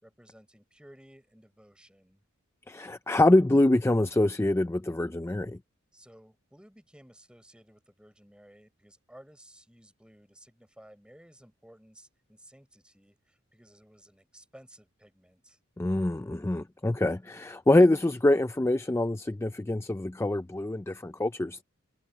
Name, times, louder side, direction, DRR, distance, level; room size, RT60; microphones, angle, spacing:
voice 1, 0.0-2.2 5.9-15.6, right 1 dB, 5° right, 4.4 m, -56 dB
voice 2, 2.7-5.6 15.8-21.6, left 1 dB, 10° left, 0.4 m, -25 dB
head